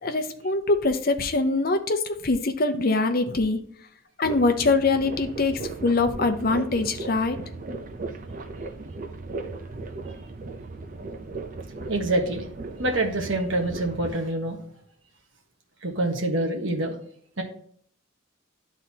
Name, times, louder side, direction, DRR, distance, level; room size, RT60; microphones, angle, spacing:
voice 1, 0.0-3.6 4.2-7.4, left 3 dB, 45° left, 7 dB, 0.8 m, -23 dB
sound 1, 4.2-14.1, right 3 dB, 40° right, 0.7 m, -37 dB
voice 2, 11.9-12.4 12.8-14.6 15.8-17.0 17.4-17.5, right 2 dB, 65° right, 3 dB, 1.4 m, -26 dB
11.5 x 4.0 x 2.9 m, 0.63 s
head